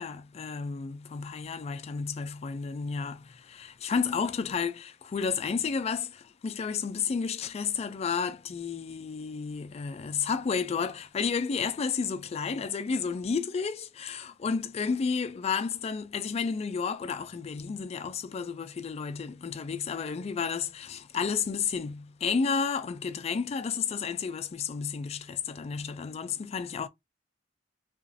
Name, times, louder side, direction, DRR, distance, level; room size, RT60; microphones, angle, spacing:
voice 1, 0.0-26.9, left 5 dB, 35° left, 0.3 m, -31 dB
2.9 x 2.5 x 2.6 m
head